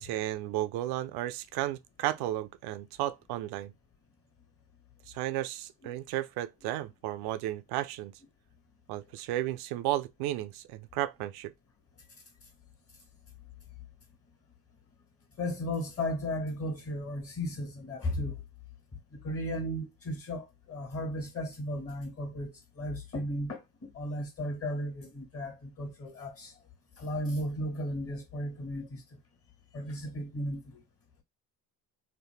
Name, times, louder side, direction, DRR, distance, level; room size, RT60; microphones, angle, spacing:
voice 1, 0.0-3.7 5.1-8.1 8.9-11.5, right 14 dB, 70° right, 0.5 m, -33 dB
voice 2, 15.4-18.4 19.1-26.5 27.0-29.0 29.7-30.8, left 1 dB, 35° left, 1.5 m, -35 dB
2.9 x 2.1 x 3.2 m
supercardioid pair, 75°, 39 cm